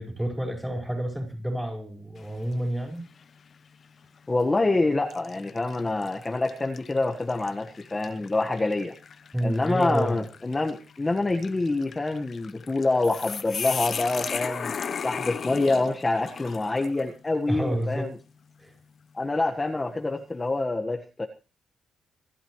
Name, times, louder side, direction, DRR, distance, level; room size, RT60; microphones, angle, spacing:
voice 1, 0.0-3.1 9.3-10.2 17.5-18.1 18.6-18.7, right 1 dB, 5° right, 4 dB, 5.0 m, -29 dB
sound 1, 2.2-2.6 3.2-3.3 4.2-4.5 5.1-17.1, left 6 dB, 45° left, 0.9 m, -37 dB
voice 2, 4.3-8.9 9.4-14.7 15.0-18.1 19.1-21.3, left 2 dB, 20° left, 3 dB, 1.4 m, -26 dB
27.0 x 12.0 x 3.2 m, 0.34 s
cardioid pair, 115°, 0 cm